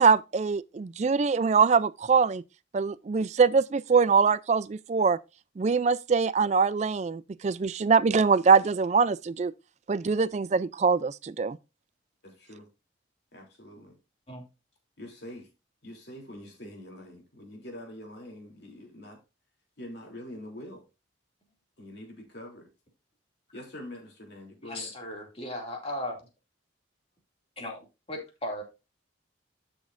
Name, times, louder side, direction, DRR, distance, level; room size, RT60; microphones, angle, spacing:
voice 1, 0.0-2.4 2.7-5.2 5.6-9.5 9.9-11.6, right 5 dB, 35° right, 0.3 m, -23 dB
voice 2, 12.2-12.7 13.3-14.0 15.0-15.5 15.8-19.2 19.8-20.8 21.8-22.7 23.5-24.9, left 1 dB, 55° left, 3.2 m, -44 dB
voice 3, 24.6-26.2 27.6-28.6, left 1 dB, 30° left, 2.4 m, -36 dB
12.0 x 6.2 x 2.5 m
head